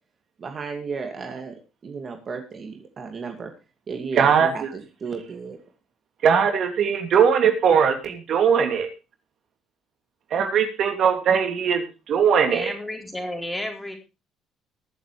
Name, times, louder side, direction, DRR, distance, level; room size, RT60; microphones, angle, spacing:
voice 1, 0.4-3.5 3.9-5.6, right 5 dB, 40° right, 4 dB, 2.4 m, -34 dB
voice 2, 4.2-4.7 6.2-8.9 10.3-12.7, right 7 dB, 55° right, 5 dB, 2.9 m, -20 dB
voice 3, 12.5-14.0, left 1 dB, 10° left, 3 dB, 4.1 m, -32 dB
22.5 x 7.6 x 3.3 m, 0.30 s
cardioid pair, 100°, 0 cm